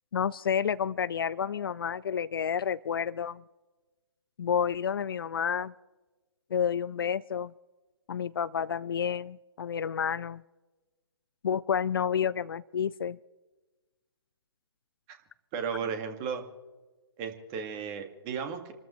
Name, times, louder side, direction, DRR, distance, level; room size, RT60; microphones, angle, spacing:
voice 1, 0.1-3.4 4.4-5.7 6.5-7.5 8.1-10.4 11.4-13.2, left 7 dB, 55° left, 18 dB, 0.4 m, -30 dB
voice 2, 15.5-16.4 17.2-18.7, right 6 dB, 25° right, 6 dB, 2.0 m, -34 dB
28.5 x 13.5 x 3.2 m, 1.2 s
figure-of-eight pair, 135°, 14 cm